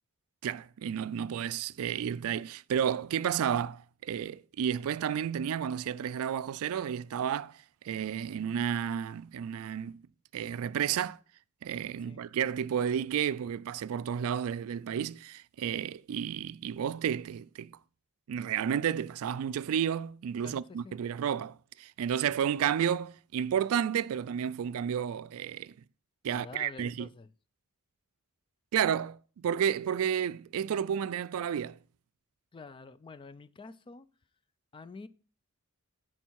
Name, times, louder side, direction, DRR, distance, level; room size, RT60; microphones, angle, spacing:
voice 1, 0.4-10.0 10.3-11.2 11.6-17.7 18.3-25.7 26.2-27.1 28.7-31.8, right 8 dB, 65° right, 0.3 m, -31 dB
voice 2, 20.4-21.0 26.2-27.3 32.5-34.1 34.7-35.1, left 4 dB, 20° left, 0.3 m, -47 dB
9.8 x 4.5 x 4.6 m
head